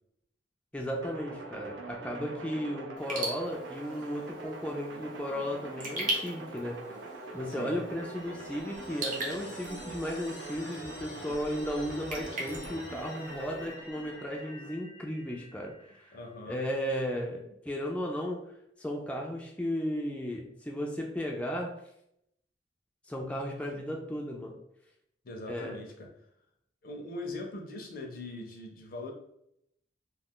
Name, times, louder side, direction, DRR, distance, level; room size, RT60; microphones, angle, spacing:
voice 1, 0.7-6.8 7.3-15.7 16.0-16.2 16.5-18.4 18.8-21.7 23.1-24.5 25.5-25.7, equal, 5° left, -1 dB, 0.3 m, -35 dB
sound 1, 1.0-14.7, right 2 dB, 85° right, 0.5 m, -44 dB
Raindrop / Drip, 3.0-13.7, right 2 dB, 45° right, 0.8 m, -41 dB
sound 2, 7.2-16.5, left 2 dB, 90° left, 0.9 m, -50 dB
voice 2, 7.5-7.8 16.1-16.6 25.2-26.1 26.8-29.1, left 2 dB, 55° left, 2 dB, 0.6 m, -41 dB
2.4 x 2.3 x 3.5 m, 0.75 s
head